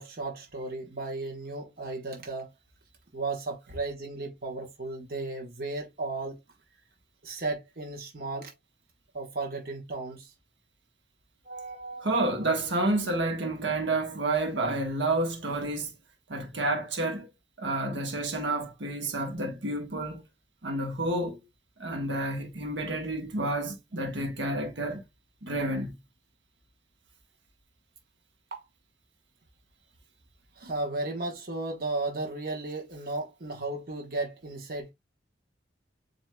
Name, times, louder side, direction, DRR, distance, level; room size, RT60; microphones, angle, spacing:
voice 1, 0.0-2.5 3.1-6.4 7.2-8.5 9.1-10.3 11.4-12.5 28.5-28.6 30.6-34.9, right 2 dB, 50° right, 1.1 m, -35 dB
voice 2, 12.0-15.9 16.3-17.3 17.6-20.2 20.6-21.4 21.8-25.0 25.4-25.9, right 2 dB, 80° right, 1.2 m, -29 dB
7.4 x 2.7 x 2.2 m
head